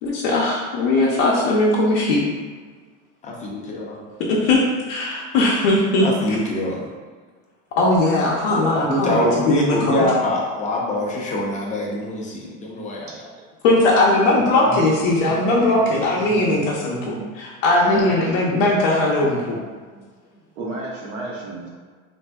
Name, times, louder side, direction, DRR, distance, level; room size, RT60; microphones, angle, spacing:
voice 1, 0.0-2.2 4.3-4.6 4.9-6.4 7.8-10.0 13.6-19.6, left 2 dB, 70° left, -5 dB, 0.7 m, -19 dB
voice 2, 6.0-6.9 8.7-13.3 19.9-20.0, left 1 dB, 20° left, -2 dB, 0.5 m, -24 dB
voice 3, 14.3-15.9 16.3-16.7 17.0-17.2 17.8-18.6 19.2-19.3 20.6-21.7, right 3 dB, 90° right, -4 dB, 1.0 m, -32 dB
3.2 x 2.6 x 2.2 m, 1.5 s
supercardioid pair, 120°, 37 cm